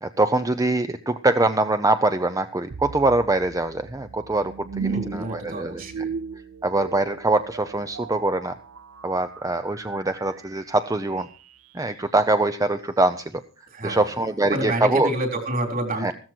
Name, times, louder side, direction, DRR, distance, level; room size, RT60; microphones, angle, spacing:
voice 1, 0.0-6.0 6.6-8.5 9.0-11.3 11.7-13.4 13.8-15.1 16.0-16.1, right 2 dB, 15° right, 10 dB, 0.7 m, -23 dB
sound 1, 2.7-11.8, right 6 dB, 75° right, 0.7 m, -37 dB
voice 2, 4.8-6.1 13.7-14.0 14.5-16.1, right 1 dB, 45° right, 5 dB, 3.8 m, -28 dB
15.5 x 14.0 x 4.6 m, 0.38 s
head